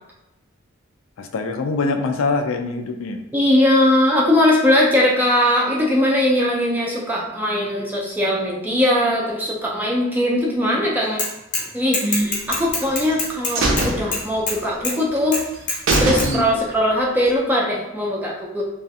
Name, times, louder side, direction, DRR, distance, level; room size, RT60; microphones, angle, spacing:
voice 1, 1.2-3.2 16.2-16.5, left 3 dB, 80° left, 5 dB, 0.3 m, -24 dB
voice 2, 3.3-11.3 11.7-15.4 16.0-18.6, left 1 dB, 10° right, -3 dB, 0.3 m, -20 dB
Bicycle / Mechanisms, 11.2-11.7 11.9-14.6 14.8-14.9 15.3-16.3, left 3 dB, 40° left, 0.6 m, -24 dB
sound 1, 12.5-13.2 13.5-14.8 15.2-15.3 15.6-15.7 15.9-16.8 17.1-17.2, right 2 dB, 70° right, 0.5 m, -22 dB
2.4 x 2.3 x 2.6 m, 0.91 s
head